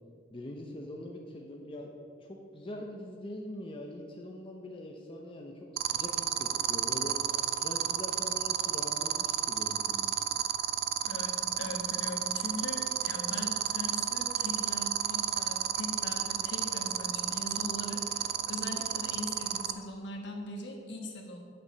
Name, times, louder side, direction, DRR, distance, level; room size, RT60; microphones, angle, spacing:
voice 1, 0.3-1.9 2.3-10.2, left 1 dB, 30° left, 0 dB, 0.7 m, -43 dB
sound 1, 5.8-19.7, right 10 dB, 55° right, 0.4 m, -30 dB
voice 2, 11.0-21.4, left 1 dB, 65° left, 2 dB, 1.4 m, -40 dB
7.5 x 6.7 x 6.1 m, 2.3 s
head